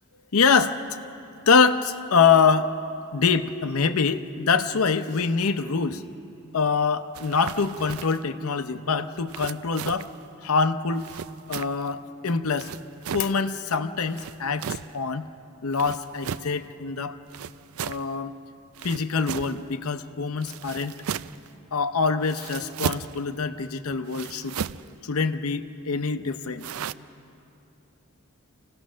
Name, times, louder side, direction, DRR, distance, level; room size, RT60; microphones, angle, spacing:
voice 1, 0.3-0.8 1.5-2.7 3.1-6.0 6.5-10.1 10.4-11.0 11.5-12.7 13.1-15.3 15.6-17.2 17.8-18.4 18.8-21.0 21.7-24.6 25.0-26.7, left 5 dB, 85° left, 9 dB, 0.7 m, -24 dB
sound 1, 7.1-8.3 9.3-10.2 11.0-11.9 12.6-13.3 14.1-15.0 15.7-16.6 17.3-18.1 18.7-19.7 20.4-21.5 22.2-23.2 24.1-24.9 26.6-26.9, right 8 dB, 80° right, 0.4 m, -35 dB
27.0 x 17.0 x 6.3 m, 2.7 s
head